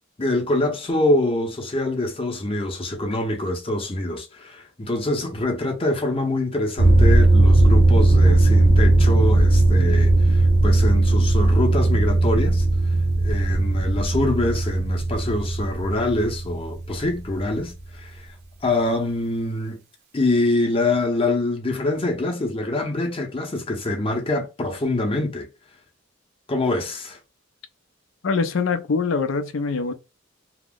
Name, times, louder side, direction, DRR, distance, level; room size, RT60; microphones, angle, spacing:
voice 1, 0.2-12.6 13.2-18.3 18.6-19.8 20.1-25.5 26.5-27.2, left 2 dB, 30° left, 0.7 m, -25 dB
sound 1, 6.8-17.6, right 2 dB, 55° right, 0.7 m, -17 dB
voice 2, 28.2-29.9, left 4 dB, 75° left, 0.5 m, -23 dB
2.8 x 2.0 x 3.5 m
head